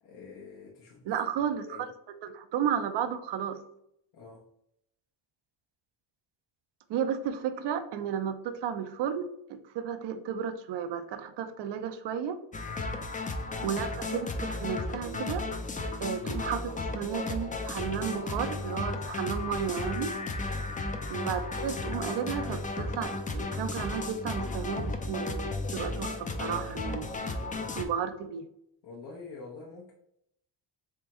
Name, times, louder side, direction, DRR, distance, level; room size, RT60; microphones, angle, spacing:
voice 1, 0.0-1.1 1.7-1.9 4.1-4.4 12.9-13.1 20.5-20.8 27.6-27.8 28.8-29.9, left 4 dB, 65° left, -4 dB, 1.0 m, -47 dB
voice 2, 1.1-1.9 2.2-3.6 6.9-12.4 13.6-15.5 16.0-20.2 21.1-28.5, right 8 dB, 70° right, 9 dB, 0.6 m, -33 dB
sound 1, 12.5-27.8, left 3 dB, 20° left, 0.4 m, -34 dB
3.6 x 3.4 x 3.0 m, 0.76 s
cardioid pair, 85°, 43 cm